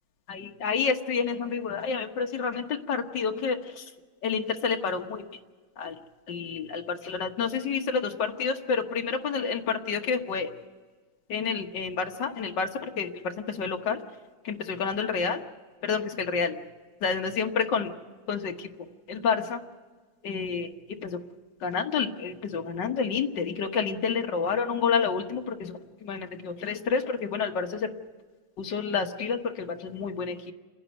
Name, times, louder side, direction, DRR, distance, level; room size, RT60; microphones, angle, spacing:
voice 1, 0.3-3.9 4.2-5.2 5.8-6.0 6.3-10.5 11.3-14.0 14.4-15.4 15.8-16.6 17.0-17.9 18.3-18.7 19.1-19.6 20.2-20.7 21.0-21.2 21.6-27.9 28.6-30.4, left 5 dB, 55° left, 4 dB, 1.9 m, -29 dB
28.5 x 11.0 x 9.5 m, 1.4 s
omnidirectional pair, 2.4 m